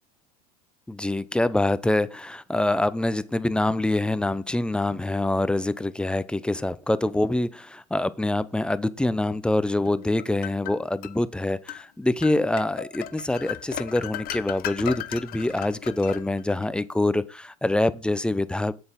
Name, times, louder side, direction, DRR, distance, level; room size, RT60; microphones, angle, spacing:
voice 1, 0.9-18.7, left 2 dB, 5° left, 0.6 m, -25 dB
sound 1, 9.8-11.2 11.7-11.8 12.2-16.6, left 13 dB, 50° left, 0.9 m, -36 dB
7.9 x 7.9 x 3.8 m
hypercardioid pair, 95°, 20 cm